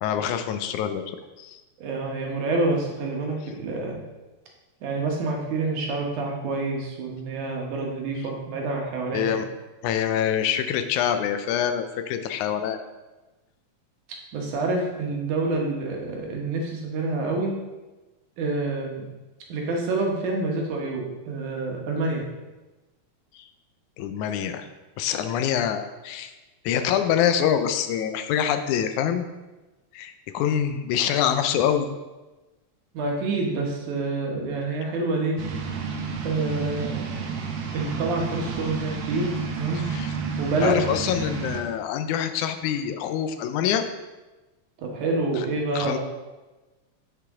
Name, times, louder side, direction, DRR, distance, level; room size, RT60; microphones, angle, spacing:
voice 1, 0.0-1.6 9.1-9.5 9.8-12.8 23.4-23.5 24.0-24.7 25.0-26.3 26.7-29.3 29.9-31.9 39.8-40.1 40.6-43.8 45.4-45.5 45.8-46.0, left 9 dB, 85° left, 8 dB, 2.1 m, -25 dB
voice 2, 1.8-4.0 4.8-9.4 14.3-17.5 18.4-19.1 19.5-22.3 32.9-35.4 36.2-37.1 37.7-39.8 40.4-40.8 44.8-46.0, right 3 dB, 90° right, 0 dB, 2.9 m, -27 dB
sound 1, 35.4-41.6, right 5 dB, 65° right, 1.7 m, -31 dB
8.1 x 6.8 x 3.6 m, 1.1 s
omnidirectional pair, 3.4 m